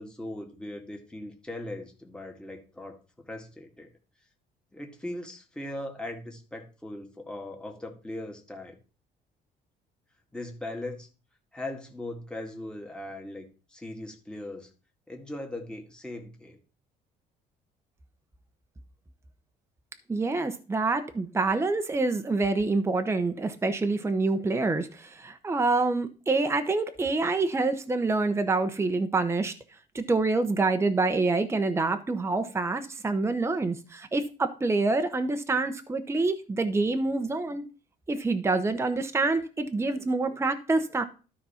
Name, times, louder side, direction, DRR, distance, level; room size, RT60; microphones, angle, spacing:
voice 1, 0.0-3.0 3.3-3.9 4.7-8.8 10.3-11.1 11.5-14.7 15.1-16.6, left 1 dB, 5° left, 2.1 m, -39 dB
voice 2, 20.1-29.5 29.9-37.6 38.1-41.0, right 3 dB, 15° right, 0.9 m, -26 dB
12.5 x 4.2 x 5.8 m
cardioid pair, 110°, 17 cm